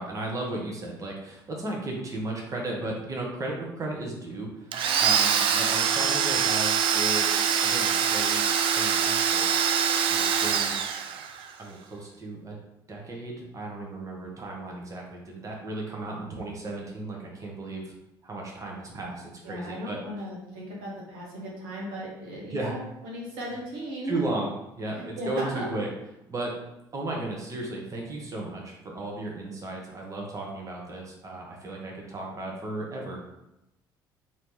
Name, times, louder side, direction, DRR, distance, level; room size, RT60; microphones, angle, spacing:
voice 1, 0.0-7.3 7.6-9.5 9.8-10.8 11.6-12.6 12.9-17.9 18.2-20.0 22.5-22.7 24.0-25.9 26.3-26.6 26.9-33.2, right 2 dB, 25° right, -2 dB, 0.9 m, -35 dB
Domestic sounds home sounds, 4.7-11.5, right 7 dB, 45° right, 0.4 m, -24 dB
voice 2, 19.4-24.2 24.9-25.6, equal, 70° right, -4 dB, 0.9 m, -36 dB
2.8 x 2.7 x 3.7 m, 0.89 s
figure-of-eight pair, 55°, 12 cm